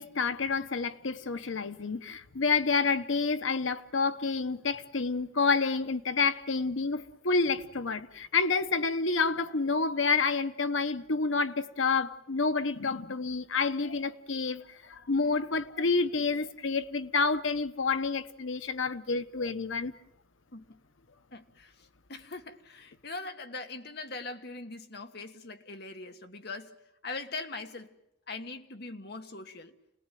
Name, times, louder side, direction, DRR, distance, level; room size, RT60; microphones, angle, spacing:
voice 1, 0.0-19.9, left 4 dB, 85° left, 1.0 m, -29 dB
voice 2, 21.3-28.0 28.3-29.7, left 3 dB, 55° left, 1.6 m, -41 dB
28.5 x 19.5 x 9.2 m
head